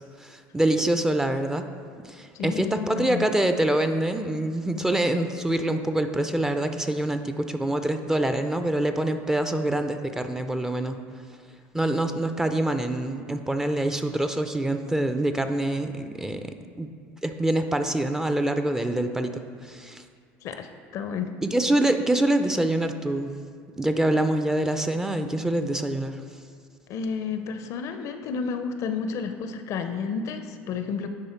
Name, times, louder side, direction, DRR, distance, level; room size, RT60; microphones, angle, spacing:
voice 1, 0.0-1.7 2.0-11.0 11.7-16.9 17.2-20.0 21.4-23.3 23.8-26.2, right 1 dB, 10° right, 7 dB, 0.4 m, -25 dB
voice 2, 2.3-3.2 20.4-21.3 26.9-31.1, left 6 dB, 55° left, 8 dB, 0.5 m, -31 dB
9.7 x 3.4 x 4.4 m, 2.1 s
supercardioid pair, 100°, 6 cm